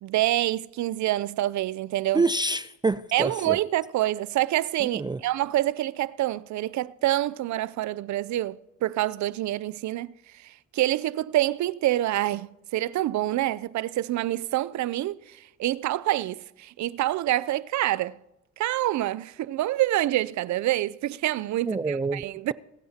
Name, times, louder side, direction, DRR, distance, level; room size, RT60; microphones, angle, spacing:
voice 1, 0.0-2.2 3.1-18.2 18.6-22.5, right 15 dB, 70° right, 0.6 m, -27 dB
voice 2, 2.1-3.6 4.8-5.2 21.7-22.2, right 3 dB, 15° right, 0.3 m, -26 dB
27.0 x 9.5 x 2.8 m
cardioid pair, 90°, 30 cm